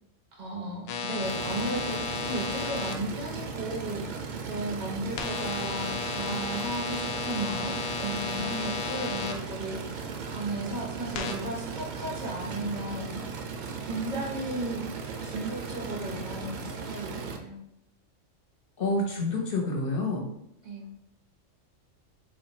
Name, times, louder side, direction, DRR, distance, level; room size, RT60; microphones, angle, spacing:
voice 1, 0.4-4.0 4.4-13.4 13.8-14.8 15.2-17.6 20.6-20.9, right 2 dB, 35° right, -2 dB, 1.1 m, -35 dB
sound 1, 0.9-2.9 5.2-9.3 11.1-11.3, left 5 dB, 85° left, 1.0 m, -33 dB
sound 2, 1.2-17.4, right 5 dB, 70° right, 0.4 m, -37 dB
voice 2, 18.8-20.2, left 2 dB, 50° left, 0 dB, 1.0 m, -28 dB
3.5 x 3.3 x 4.0 m, 0.77 s
omnidirectional pair, 1.3 m